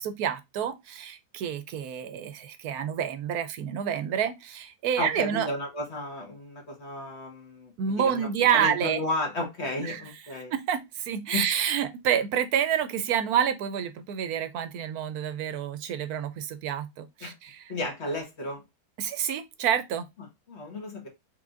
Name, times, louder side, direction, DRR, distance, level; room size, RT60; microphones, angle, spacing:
voice 1, 0.0-5.5 7.8-9.0 9.8-10.0 10.5-17.6 19.0-20.0, right 9 dB, 75° right, 1.0 m, -28 dB
voice 2, 5.0-10.5 11.3-11.4 17.2-17.3 17.7-18.6 20.5-21.1, left 2 dB, 45° left, 1.6 m, -33 dB
4.7 x 3.5 x 2.4 m
omnidirectional pair, 1.7 m